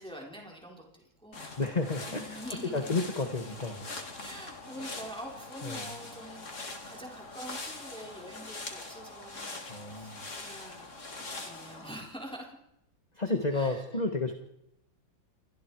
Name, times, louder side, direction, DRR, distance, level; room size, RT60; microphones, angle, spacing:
voice 1, 0.0-1.5 2.1-2.9 4.2-12.6 13.5-13.8, right 1 dB, ahead, 0 dB, 4.0 m, -46 dB
sound 1, 1.3-12.0, left 3 dB, 40° left, 3.0 m, -43 dB
voice 2, 1.6-2.4 2.7-3.9 5.6-5.9 9.7-10.2 13.1-14.3, left 3 dB, 20° left, 5 dB, 1.6 m, -31 dB
29.5 x 24.5 x 4.8 m, 0.82 s
omnidirectional pair, 2.1 m